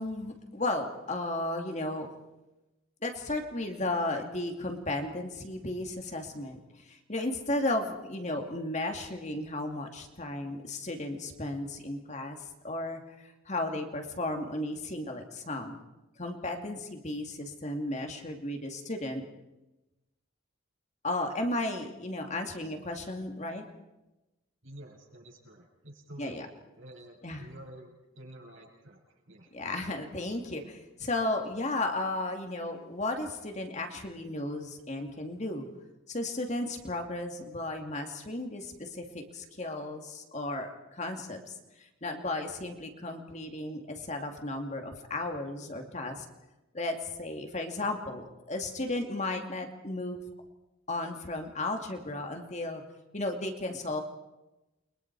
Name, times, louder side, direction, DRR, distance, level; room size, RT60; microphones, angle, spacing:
voice 1, 0.0-2.1 3.0-6.6 6.9-12.4 12.6-13.0 13.5-15.8 16.2-19.3 21.0-23.6 26.2-26.5 27.2-27.5 29.5-35.7 36.1-41.5 42.0-46.3 46.7-50.2 50.9-52.8 53.1-54.0, left 2 dB, 35° left, 4 dB, 2.4 m, -34 dB
voice 2, 24.6-26.5 26.8-29.0 29.3-29.5, right 1 dB, 70° right, 1 dB, 6.5 m, -49 dB
29.5 x 23.5 x 4.8 m, 0.99 s
head